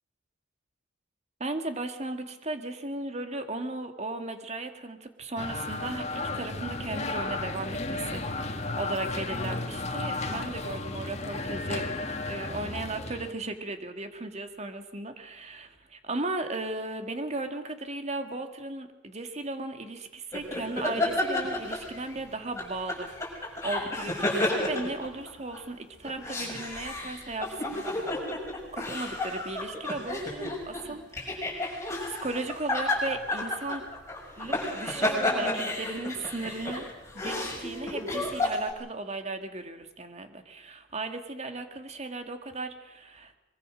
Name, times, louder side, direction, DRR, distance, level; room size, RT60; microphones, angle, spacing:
voice 1, 1.4-11.9 12.3-27.9 28.7-31.7 32.0-33.8 34.4-36.9 37.1-43.3, right 2 dB, 35° right, 7 dB, 2.1 m, -36 dB
sound 1, 5.4-13.3, left 2 dB, 35° left, 1.7 m, -33 dB
sound 2, 20.3-22.2 22.5-25.6 26.0-38.7, left 1 dB, 15° left, 6.1 m, -31 dB
23.5 x 23.0 x 6.4 m, 0.95 s
head